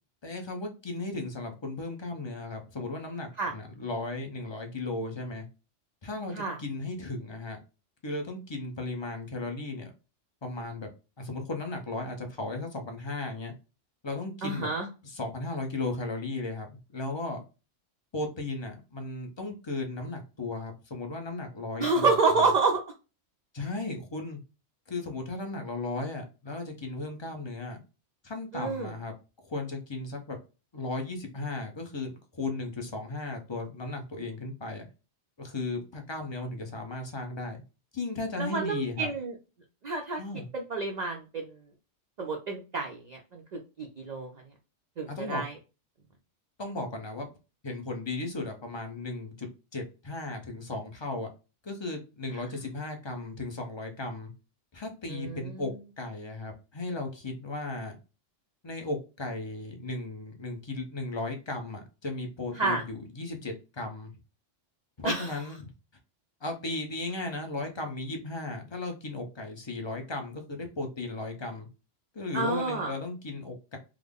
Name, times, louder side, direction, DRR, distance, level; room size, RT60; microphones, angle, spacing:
voice 1, 0.2-5.4 6.0-7.6 8.0-9.9 10.4-10.9 11.2-13.5 14.0-14.7 15.0-17.4 18.1-22.5 23.5-24.4 24.9-27.8 28.2-29.1 29.5-30.4 30.7-34.9 35.4-37.6 37.9-39.1 40.2-40.5 45.1-45.4 46.6-47.3 47.6-49.5 49.7-51.3 51.6-54.3 54.7-57.9 58.6-64.1 65.0-65.7 66.4-71.7 72.1-73.8, left 2 dB, 30° left, 4 dB, 0.5 m, -36 dB
voice 2, 14.4-14.9 21.8-22.8 28.5-28.9 38.4-39.3 39.8-40.2 40.5-41.6 42.2-43.4 43.8-44.3 45.0-45.5 52.3-52.4 55.1-55.6 62.6-62.8 65.0-65.3 72.3-73.0, right 3 dB, 50° right, 2 dB, 0.5 m, -29 dB
3.6 x 2.0 x 3.5 m, 0.30 s
omnidirectional pair, 1.3 m